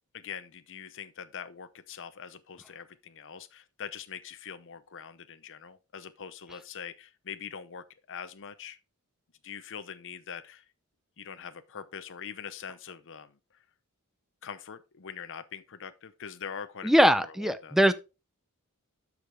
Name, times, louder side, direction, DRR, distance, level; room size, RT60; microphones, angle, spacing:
voice 1, 0.1-8.8 9.4-10.6 11.2-13.4 14.4-16.9 17.2-17.8, left 7 dB, 60° left, 0.8 m, -43 dB
voice 2, 16.8-17.9, equal, ahead, 0.6 m, -21 dB
12.5 x 5.0 x 3.4 m
head